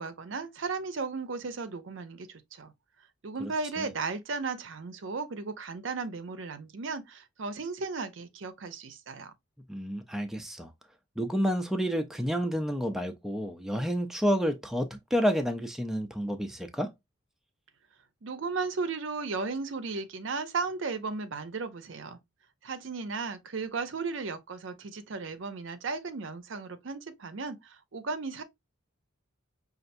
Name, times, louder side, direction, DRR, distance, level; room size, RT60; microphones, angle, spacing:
voice 1, 0.0-2.7 3.2-9.3 18.2-22.2 22.6-28.4, right 4 dB, 65° right, 0.6 m, -35 dB
voice 2, 9.7-10.7 11.2-16.9, equal, ahead, 0.4 m, -29 dB
5.4 x 2.5 x 2.5 m
head